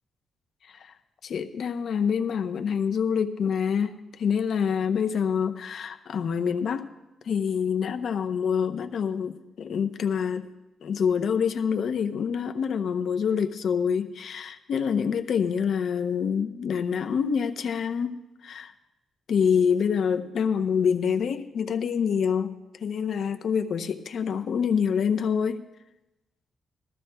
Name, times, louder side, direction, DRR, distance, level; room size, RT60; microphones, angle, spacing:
voice 1, 1.2-6.9 7.3-10.5 10.8-18.2 18.4-18.7 19.3-22.5 22.8-25.6, left 7 dB, 60° left, 7 dB, 0.7 m, -26 dB
20.0 x 14.0 x 2.3 m, 1.0 s
cardioid pair, 135°, 0 cm